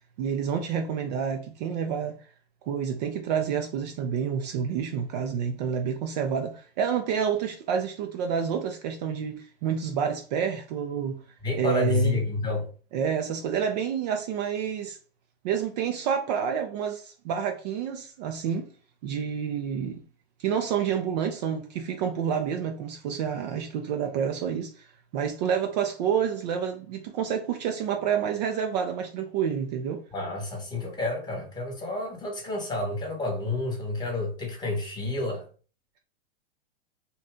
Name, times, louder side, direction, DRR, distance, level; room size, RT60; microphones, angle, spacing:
voice 1, 0.2-2.2 2.6-11.2 11.6-12.2 12.9-15.0 15.4-18.7 19.0-20.0 20.4-30.0, right 7 dB, 45° right, 0.4 m, -29 dB
voice 2, 11.4-12.7 30.1-35.4, left 2 dB, 15° left, 1.1 m, -29 dB
2.7 x 2.3 x 3.5 m
hypercardioid pair, 130°, 31 cm